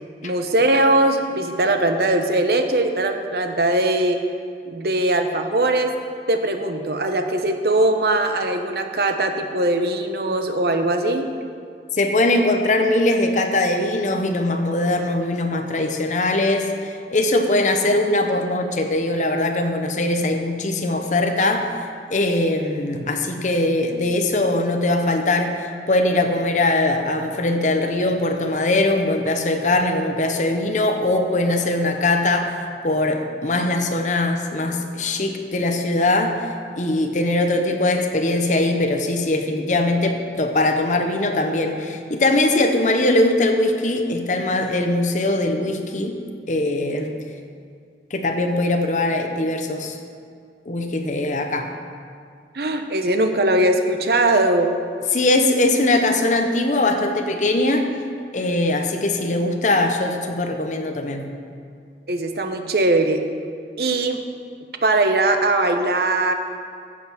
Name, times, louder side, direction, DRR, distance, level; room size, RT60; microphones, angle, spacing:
voice 1, 0.2-4.2 4.7-5.9 6.3-11.3 52.5-54.8 62.1-63.2 63.8-64.2 64.8-66.3, right 2 dB, 60° right, 6 dB, 0.9 m, -20 dB
voice 2, 11.9-21.7 22.1-32.5 32.8-36.4 36.8-46.2 46.5-47.2 48.1-50.0 50.7-51.7 55.1-57.9 58.3-61.3, left 2 dB, 45° left, 4 dB, 0.8 m, -21 dB
15.0 x 5.6 x 5.8 m, 2.2 s
head